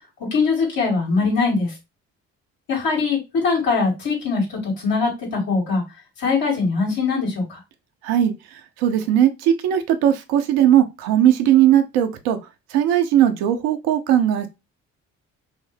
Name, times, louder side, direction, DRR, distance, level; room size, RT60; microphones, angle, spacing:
voice 1, 0.3-1.7 2.7-5.8 6.2-7.6, left 4 dB, 65° left, 2.8 m, -21 dB
voice 2, 8.8-12.4 12.7-14.5, right 11 dB, 75° right, 0.9 m, -18 dB
6.0 x 2.1 x 3.3 m
hypercardioid pair, 50°, 37 cm